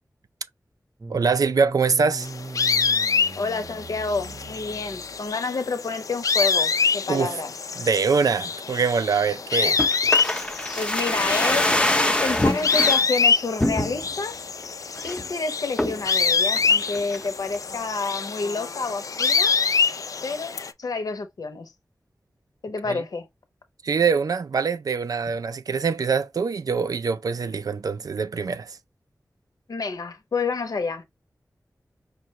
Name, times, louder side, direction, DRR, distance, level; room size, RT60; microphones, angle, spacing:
sound 1, 1.0-5.3, right 3 dB, 35° right, 0.6 m, -39 dB
voice 1, 1.1-2.3 7.1-7.4 7.8-9.8 22.9-23.0 23.8-28.8, right 5 dB, 75° right, 0.4 m, -24 dB
sound 2, 2.2-20.7, left 5 dB, 65° left, 0.3 m, -26 dB
voice 2, 3.4-7.5 9.6-9.8 10.8-11.8 12.2-14.4 15.0-19.6 20.2-21.7 22.6-23.3 29.7-31.0, left 4 dB, 90° left, 0.7 m, -29 dB
sound 3, 9.8-13.0 13.6-14.2 14.6-14.7 15.0-15.3 15.8-16.1 16.6-17.3 17.5-17.6, left 1 dB, 15° left, 0.6 m, -24 dB
5.1 x 2.2 x 2.8 m
wide cardioid pair, 80°, 6 cm